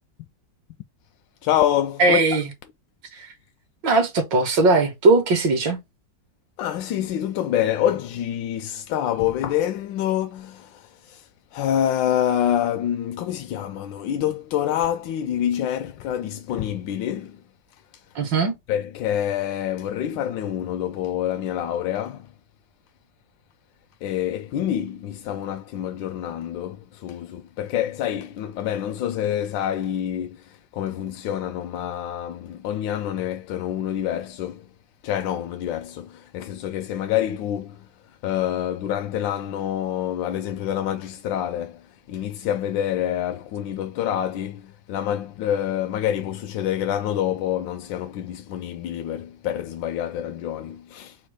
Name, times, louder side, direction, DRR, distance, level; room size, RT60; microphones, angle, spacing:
voice 1, 1.4-2.2 6.6-17.4 17.9-18.0 18.7-22.3 24.0-34.7 35.0-51.2, left 11 dB, 85° left, 1.3 m, -27 dB
voice 2, 2.0-2.5 3.1-3.3 3.8-5.8 18.2-18.5, right 3 dB, 75° right, 1.9 m, -19 dB
4.3 x 2.4 x 4.7 m
omnidirectional pair, 2.0 m